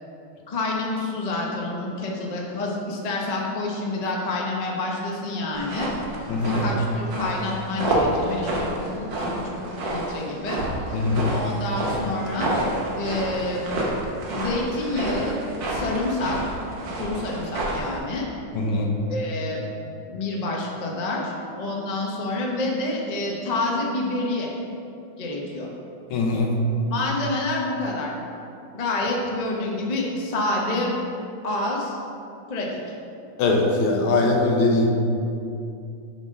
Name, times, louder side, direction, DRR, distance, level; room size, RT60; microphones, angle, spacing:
voice 1, 0.5-5.9 6.4-10.6 10.9-11.0 11.3-12.5 13.0-13.6 14.3-15.4 15.7-16.4 17.0-18.3 19.1-19.6 20.1-24.5 25.2-25.7 26.9-28.1 28.7-30.9 31.4-32.0 32.5-32.8, left 2 dB, 35° left, -2 dB, 0.6 m, -28 dB
sound 1, 5.5-18.0, right 1 dB, 60° right, 1.8 m, -29 dB
voice 2, 6.3-6.6 10.9-11.3 18.5-18.9 26.1-26.5 33.4-34.9, left 2 dB, 80° left, 1 dB, 1.8 m, -21 dB
6.6 x 5.8 x 5.4 m, 2.7 s
omnidirectional pair, 2.3 m